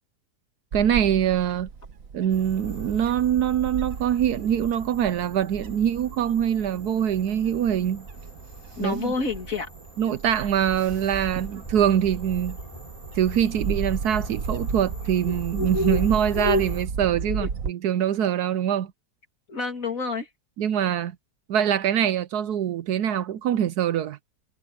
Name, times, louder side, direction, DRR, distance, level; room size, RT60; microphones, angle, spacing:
Bird / Wind, 0.7-17.7, right 5 dB, 55° right, 1.5 m, -35 dB
voice 1, 0.7-1.7 2.1-8.1 8.8-9.1 10.0-12.6 13.1-18.9 20.6-21.2 21.5-24.2, right 9 dB, 70° right, 1.2 m, -24 dB
sound 1, 2.3-16.9, left 1 dB, 20° left, 6.0 m, -36 dB
voice 2, 8.8-9.7 17.1-17.5 19.5-20.3, left 4 dB, 50° left, 3.0 m, -29 dB
omnidirectional pair, 1.8 m